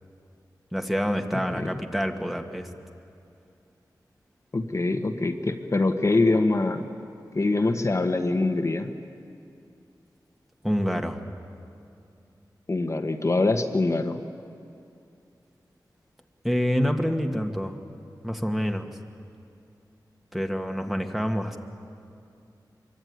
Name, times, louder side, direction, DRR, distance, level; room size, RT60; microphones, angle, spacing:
voice 1, 0.7-2.7 10.6-11.2 16.4-17.8 18.2-18.9 20.3-21.6, equal, ahead, 4 dB, 1.8 m, -27 dB
voice 2, 4.5-6.9 7.3-8.9 12.7-14.2, left 2 dB, 40° left, 5 dB, 1.5 m, -24 dB
24.0 x 23.5 x 9.6 m, 2.5 s
wide cardioid pair, 80°, 7 cm